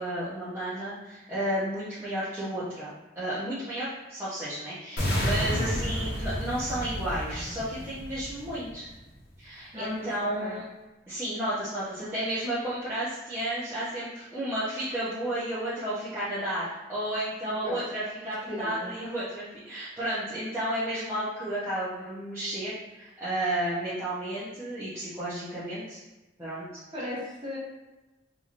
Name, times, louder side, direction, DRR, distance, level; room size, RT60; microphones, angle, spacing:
voice 1, 0.0-8.9 9.4-10.6 11.1-26.0 26.4-26.7, right 1 dB, 15° right, -12 dB, 0.7 m, -32 dB
sound 1, 5.0-9.0, equal, 60° left, 0.8 m, -31 dB
voice 2, 5.5-5.9 9.7-10.1 10.4-10.6 17.4-17.8 18.5-18.9 26.9-27.6, left 1 dB, 30° right, -8 dB, 1.3 m, -36 dB
2.9 x 2.8 x 2.5 m, 1.1 s
head